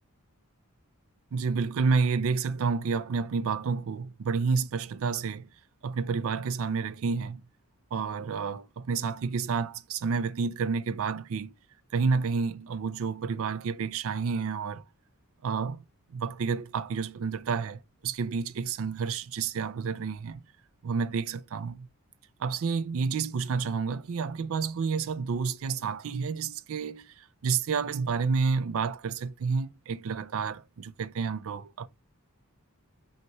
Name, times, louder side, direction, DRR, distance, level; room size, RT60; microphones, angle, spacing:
voice 1, 1.3-5.5 5.8-7.4 7.9-11.5 11.9-14.8 15.4-15.8 16.1-20.4 20.8-21.9 22.4-31.9, right 5 dB, 65° right, 0.4 m, -30 dB
5.6 x 3.0 x 2.2 m
head